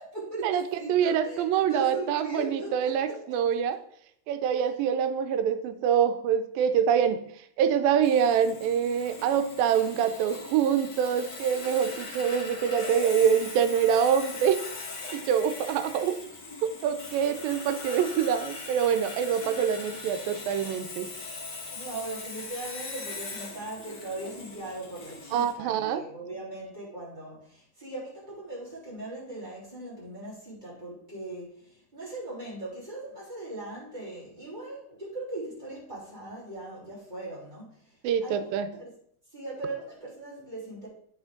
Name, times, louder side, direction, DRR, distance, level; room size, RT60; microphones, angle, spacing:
voice 1, 0.0-3.2 21.7-37.9 38.2-38.9 39.3-40.9, right 2 dB, 15° right, -9 dB, 3.7 m, -39 dB
voice 2, 0.9-3.8 4.3-7.2 7.6-14.6 15.1-16.2 16.6-21.1 25.3-26.0 38.0-38.7, right 8 dB, 85° right, 9 dB, 2.4 m, -25 dB
Sawing, 8.0-25.5, left 3 dB, 55° left, 1.1 m, -41 dB
8.8 x 5.7 x 3.7 m, 0.66 s
omnidirectional pair, 4.0 m